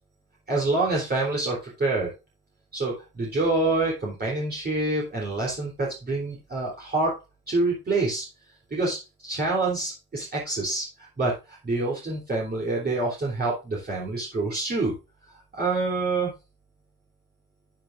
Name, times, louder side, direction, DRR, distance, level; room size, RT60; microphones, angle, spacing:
voice 1, 0.5-2.1 2.7-7.2 7.5-8.2 8.7-14.9 15.3-16.3, right 2 dB, 30° right, -4 dB, 3.5 m, -27 dB
10.0 x 9.3 x 2.6 m, 0.27 s
cardioid pair, 90°, 30 cm